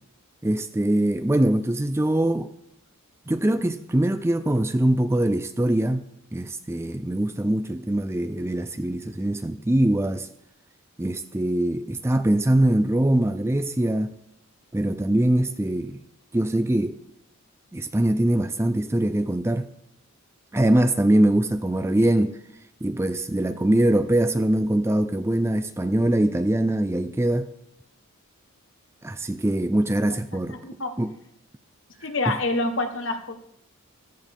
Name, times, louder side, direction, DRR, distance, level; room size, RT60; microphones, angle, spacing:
voice 1, 0.4-2.5 3.3-6.0 6.3-10.3 11.0-14.1 14.7-16.0 16.3-17.0 17.7-19.7 20.5-22.4 22.8-27.5 29.0-30.6 31.0-31.1, right 1 dB, 10° right, 0.4 m, -22 dB
voice 2, 30.5-30.9 32.0-33.4, left 2 dB, 60° left, 1.3 m, -27 dB
15.0 x 14.0 x 3.6 m
head